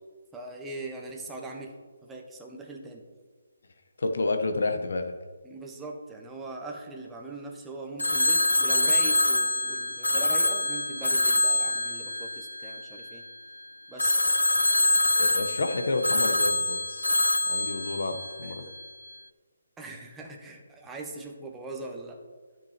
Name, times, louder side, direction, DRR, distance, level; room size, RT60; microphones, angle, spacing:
voice 1, 0.3-1.7 2.0-3.0 5.4-13.2 13.9-14.4 18.4-18.7 19.8-22.2, right 2 dB, 10° right, 0 dB, 1.3 m, -40 dB
voice 2, 4.0-5.1 15.2-17.1 17.4-18.6, left 2 dB, 65° left, 7 dB, 1.3 m, -30 dB
Telephone, 8.0-13.2 14.0-18.9, left 2 dB, 90° left, 0.3 m, -25 dB
12.5 x 6.2 x 4.4 m, 1.5 s
figure-of-eight pair, 145°, 0 cm